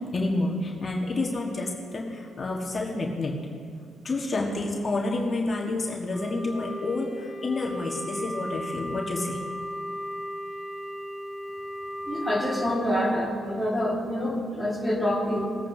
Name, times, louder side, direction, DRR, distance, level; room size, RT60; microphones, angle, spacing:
voice 1, 0.1-3.3 4.0-9.4, left 2 dB, 35° left, -2 dB, 1.5 m, -29 dB
Wind instrument woodwind instrument, 6.1-12.8, equal, 20° right, 3.3 m, -36 dB
voice 2, 12.1-15.6, equal, ahead, -3 dB, 2.0 m, -26 dB
20.5 x 9.0 x 2.8 m, 2.2 s
cardioid pair, 90°, 0 cm